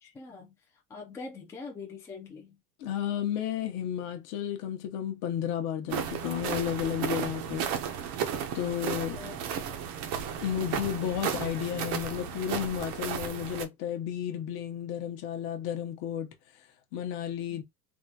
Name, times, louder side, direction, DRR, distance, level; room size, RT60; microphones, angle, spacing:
voice 1, 0.0-0.5 0.9-2.6 9.1-9.4, left 4 dB, 10° left, 0.4 m, -43 dB
voice 2, 2.8-7.7 8.5-9.2 10.4-16.3 16.9-17.6, left 10 dB, 55° left, 0.8 m, -32 dB
sound 1, 5.9-13.6, right 8 dB, 55° right, 0.6 m, -34 dB
3.5 x 2.2 x 2.7 m
cardioid pair, 170°, 31 cm